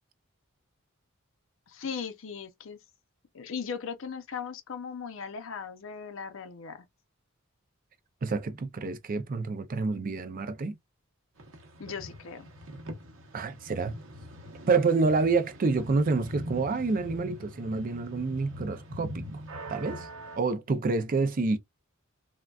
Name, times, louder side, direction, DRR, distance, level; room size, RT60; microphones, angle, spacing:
voice 1, 1.7-2.8 3.3-6.8 11.8-12.5, left 6 dB, 65° left, 0.6 m, -38 dB
voice 2, 8.2-10.8 13.3-13.9 14.7-19.2 19.7-20.1 20.4-21.6, right 4 dB, 40° right, 0.4 m, -28 dB
sound 1, 11.4-20.4, equal, 65° right, 0.9 m, -43 dB
3.7 x 2.2 x 2.3 m
head